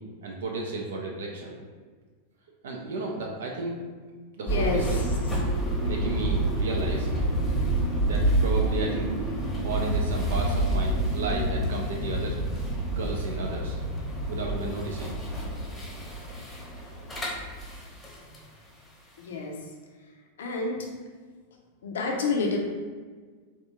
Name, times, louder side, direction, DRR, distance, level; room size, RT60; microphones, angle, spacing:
voice 1, 0.2-1.5 2.6-3.8 4.4-4.8 5.8-7.1 8.0-9.2 9.6-12.4 12.9-13.8 14.3-15.1, right 2 dB, 60° right, 0 dB, 0.4 m, -33 dB
voice 2, 4.4-5.0 19.2-19.6 20.4-20.9 21.8-22.6, left 4 dB, 60° left, 1 dB, 0.5 m, -29 dB
sound 1, 4.5-18.4, right 1 dB, 10° left, 0.8 m, -28 dB
3.3 x 2.4 x 2.8 m, 1.5 s
figure-of-eight pair, 90°, 0 cm